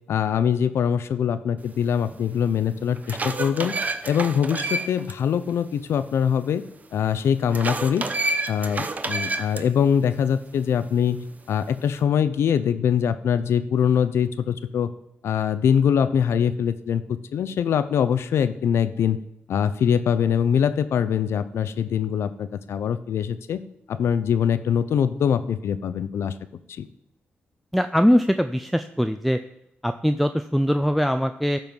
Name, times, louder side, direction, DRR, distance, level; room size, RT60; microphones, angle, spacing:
voice 1, 0.1-3.7 4.1-6.6 6.9-8.0 8.5-14.9 15.2-17.0 17.3-19.2 19.5-23.6 23.9-26.3 26.8-26.9, left 8 dB, 85° left, 13 dB, 0.6 m, -23 dB
sound 1, 2.1-2.2 2.8-5.1 5.5-5.6 7.5-9.6, right 2 dB, 40° right, 0.8 m, -28 dB
voice 2, 27.7-29.4 29.8-31.6, equal, ahead, 8 dB, 0.4 m, -21 dB
13.5 x 4.6 x 5.4 m, 0.82 s
cardioid pair, 85°, 4 cm